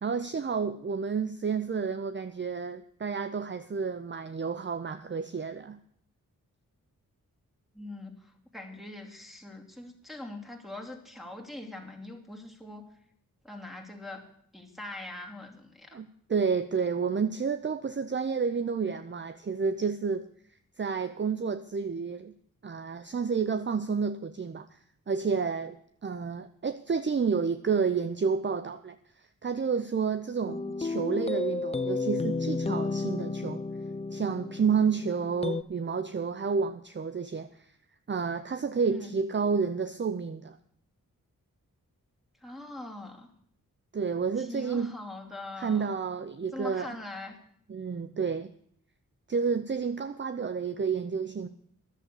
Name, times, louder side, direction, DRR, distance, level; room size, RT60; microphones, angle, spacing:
voice 1, 0.0-5.8 15.9-20.3 20.8-22.3 22.6-24.8 25.1-29.0 29.4-33.6 34.1-37.7 38.1-40.6 43.9-44.9 45.6-46.9 47.7-48.5 49.3-51.5, right 5 dB, 35° right, 11 dB, 0.6 m, -30 dB
voice 2, 7.7-12.9 13.4-14.2 14.5-16.0 38.9-39.2 42.4-43.3 44.4-45.9 46.5-47.4, left 2 dB, ahead, 3 dB, 2.7 m, -42 dB
sound 1, 30.4-35.6, left 3 dB, 15° left, 0.5 m, -32 dB
11.0 x 7.4 x 8.4 m, 0.66 s
cardioid pair, 45°, 35 cm